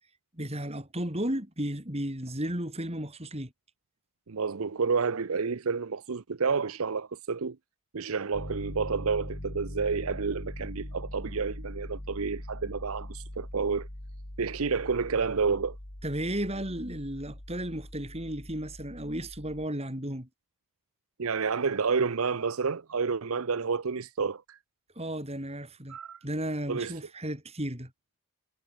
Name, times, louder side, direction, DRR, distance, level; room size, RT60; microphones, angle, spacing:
voice 1, 0.3-3.5 16.0-20.3 25.0-26.0 26.2-27.9, right 1 dB, 30° right, 5.7 m, -34 dB
voice 2, 4.3-7.6 7.9-13.9 14.4-15.8 21.2-24.6 25.9-26.2 26.7-26.9, right 5 dB, 75° right, 0.7 m, -30 dB
Piano, 8.3-19.7, left 1 dB, 55° left, 3.3 m, -41 dB
head